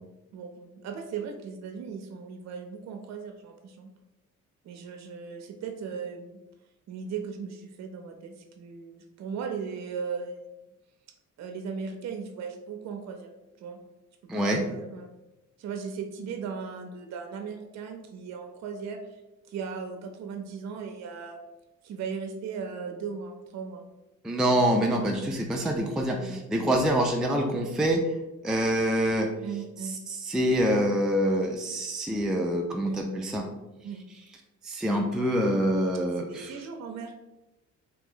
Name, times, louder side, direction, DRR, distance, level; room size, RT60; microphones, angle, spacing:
voice 1, 0.3-3.9 4.6-6.4 6.9-10.4 11.4-13.3 13.6-13.8 14.2-15.1 15.6-19.2 19.5-21.4 21.8-23.8 24.5-24.6 25.1-25.3 25.8-26.4 29.4-30.0 32.8-33.1 33.8-34.0 36.2-37.1, right 5 dB, 60° right, 5 dB, 0.6 m, -37 dB
voice 2, 14.3-14.6 24.2-28.1 28.4-29.3 30.1-33.4 34.6-36.6, equal, ahead, 1 dB, 0.4 m, -26 dB
2.9 x 2.8 x 3.8 m, 0.97 s
cardioid pair, 90°, 30 cm